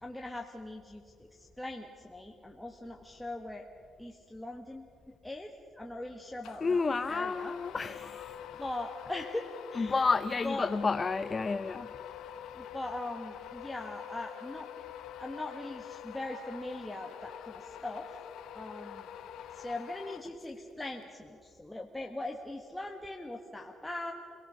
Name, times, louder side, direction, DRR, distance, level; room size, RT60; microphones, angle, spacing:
voice 1, 0.0-3.7 4.0-4.9 5.2-6.8 7.1-7.6 8.6-10.1 10.4-10.7 12.5-14.7 15.2-18.1 18.5-19.1 19.5-24.1, left 2 dB, 5° left, 1 dB, 1.6 m, -40 dB
sound 1, 6.4-20.7, left 10 dB, 80° left, 1.0 m, -46 dB
voice 2, 6.6-8.4 9.7-11.9, left 4 dB, 30° left, 10 dB, 0.7 m, -30 dB
29.5 x 18.5 x 6.4 m, 2.6 s
cardioid pair, 90°, 0 cm